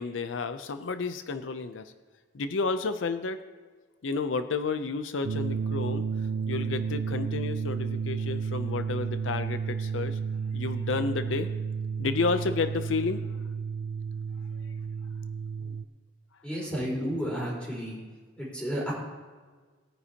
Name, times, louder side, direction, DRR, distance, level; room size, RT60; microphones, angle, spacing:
voice 1, 0.0-1.9 2.3-3.4 4.0-10.2 10.5-11.5 12.0-13.2 14.5-14.6, left 4 dB, 85° left, 10 dB, 0.5 m, -31 dB
sound 1, 5.2-15.8, right 6 dB, 80° right, 0.4 m, -32 dB
voice 2, 16.4-18.0 18.4-18.9, equal, 5° left, -6 dB, 4.1 m, -32 dB
18.5 x 9.4 x 2.9 m, 1.4 s
head